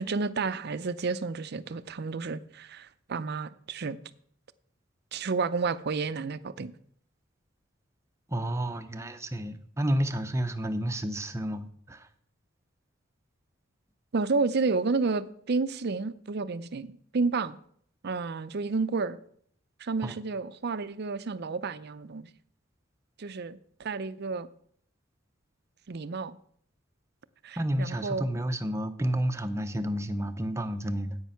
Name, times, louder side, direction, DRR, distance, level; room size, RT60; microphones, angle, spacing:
voice 1, 0.0-4.0 5.1-6.7 14.1-17.6 18.0-19.2 19.8-22.3 23.2-24.5 25.9-26.4 27.4-28.2, right 4 dB, 55° right, 0.6 m, -31 dB
voice 2, 8.3-12.1 20.0-20.1 27.6-31.2, right 1 dB, 15° right, 0.7 m, -30 dB
9.3 x 8.7 x 5.7 m
head